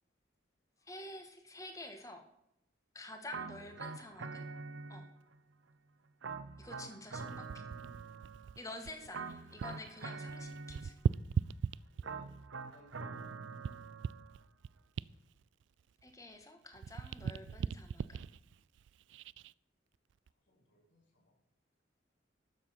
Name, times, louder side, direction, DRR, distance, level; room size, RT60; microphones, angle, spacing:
voice 1, 0.8-2.2 2.9-4.5 4.9-5.1 6.6-7.6 8.6-10.9 16.0-18.2, left 2 dB, 15° left, 6 dB, 1.6 m, -49 dB
sound 1, 3.3-5.4 6.2-8.6 9.1-11.2 12.0-14.4, right 4 dB, 90° right, 0.8 m, -45 dB
voice 2, 3.6-4.1 8.8-9.7 11.9-12.4 12.7-13.1 13.5-13.9 20.4-21.3, left 1 dB, 75° left, 0 dB, 3.5 m, -65 dB
sound 2, 7.2-9.9 10.2-12.3 12.9-16.4 16.7-19.5 20.1-20.3, right 6 dB, 70° right, 0.3 m, -39 dB
12.5 x 7.5 x 5.9 m, 0.80 s
head